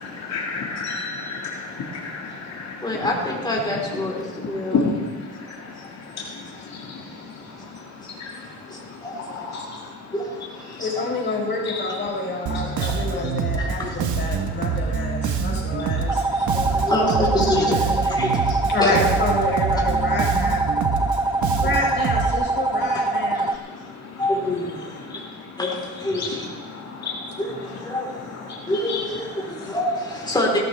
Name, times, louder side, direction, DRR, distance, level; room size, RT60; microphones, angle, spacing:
voice 1, 0.0-3.1 4.2-5.9 6.2-7.8 8.2-8.5 9.3-9.8 10.7-10.8 11.6-11.8 12.5-12.9 14.3-14.5 14.8-15.1 15.5-16.7 20.7-21.3 22.7-23.4 23.7-24.2 25.1-25.3 26.1-26.3 26.6-27.4 28.4-29.0, left 4 dB, 60° left, -3 dB, 2.1 m, -32 dB
voice 2, 2.8-4.9 5.8-5.9 8.0-8.1 8.7-9.6 10.1-11.0 12.9-13.2 13.6-14.0 16.5-19.0 21.6-21.7 23.3-23.4 24.2-25.2 25.6-26.6 27.4-30.6, left 1 dB, 15° left, -3 dB, 4.1 m, -27 dB
voice 3, 10.8-16.5 18.7-20.6 21.6-23.5, left 2 dB, 40° left, -2 dB, 4.4 m, -28 dB
Bass guitar, 12.5-22.3, right 6 dB, 75° right, 1.3 m, -25 dB
sound 1, 16.1-23.6, right 3 dB, 15° right, 0.5 m, -24 dB
17.5 x 12.5 x 3.5 m, 1.5 s
cardioid pair, 90°, 30 cm